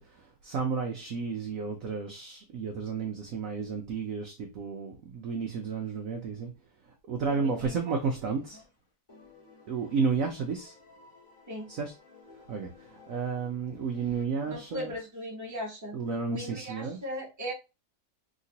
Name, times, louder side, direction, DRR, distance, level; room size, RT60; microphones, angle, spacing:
voice 1, 0.0-6.5 7.1-8.6 9.7-10.7 11.7-11.9 12.5-14.9 15.9-17.0, right 5 dB, 70° right, 0.8 m, -32 dB
voice 2, 7.3-8.0 11.5-11.7 14.5-16.0 16.3-17.5, equal, 15° right, 0.8 m, -38 dB
sound 1, 7.5-8.8 9.1-14.2, left 3 dB, 10° left, 1.6 m, -56 dB
3.2 x 2.9 x 2.7 m
omnidirectional pair, 1.9 m